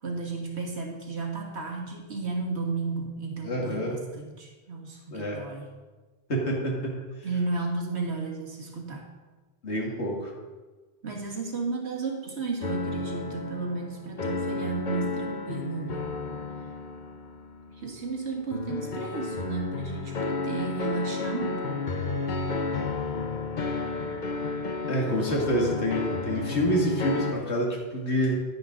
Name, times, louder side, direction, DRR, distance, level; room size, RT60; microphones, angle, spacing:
voice 1, 0.0-5.7 7.2-9.1 11.0-16.1 17.7-22.1, right 3 dB, 80° right, 1 dB, 1.8 m, -33 dB
voice 2, 3.4-4.0 5.1-5.4 6.3-7.0 9.6-10.3 24.9-28.4, equal, 85° left, -1 dB, 2.3 m, -27 dB
sound 1, 12.6-27.3, left 3 dB, 50° left, 0.9 m, -32 dB
10.5 x 9.9 x 3.8 m, 1.3 s
omnidirectional pair, 1.1 m